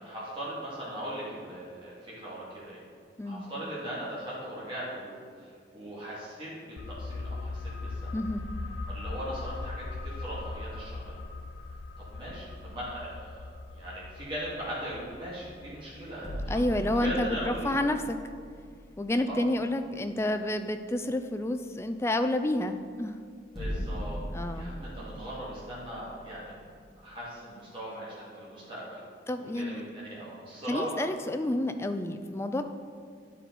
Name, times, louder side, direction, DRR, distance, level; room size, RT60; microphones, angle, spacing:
voice 1, 0.0-2.8 3.2-8.1 8.9-11.1 12.0-13.4 13.7-16.6 16.9-17.7 19.3-19.5 23.6-24.2 24.5-26.6 27.0-29.0 29.4-31.4, equal, 30° right, -8 dB, 2.2 m, -39 dB
sound 1, 6.8-18.1 18.4-18.5, left 3 dB, 85° left, 0.4 m, -40 dB
voice 2, 8.1-8.5 16.5-18.2 19.0-23.2 24.3-24.7 29.3-29.8 30.7-32.6, left 1 dB, 15° left, 8 dB, 0.3 m, -29 dB
sound 2, 16.2-19.7 20.1-20.2 23.5-27.1, equal, ahead, 1.8 m, -39 dB
10.5 x 4.6 x 4.0 m, 2.2 s
head